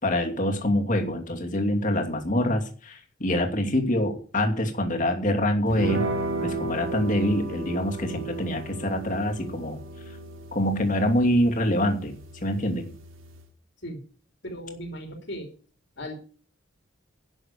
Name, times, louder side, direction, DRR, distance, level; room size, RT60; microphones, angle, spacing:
voice 1, 0.0-6.1 6.4-9.8 10.5-12.9, left 1 dB, 40° left, 3 dB, 2.6 m, -25 dB
sound 1, 5.7-13.5, right 2 dB, 80° right, 2.5 m, -35 dB
voice 2, 14.4-15.5 16.0-16.1, equal, 60° left, 4 dB, 3.0 m, -36 dB
12.0 x 7.1 x 8.5 m, 0.41 s
head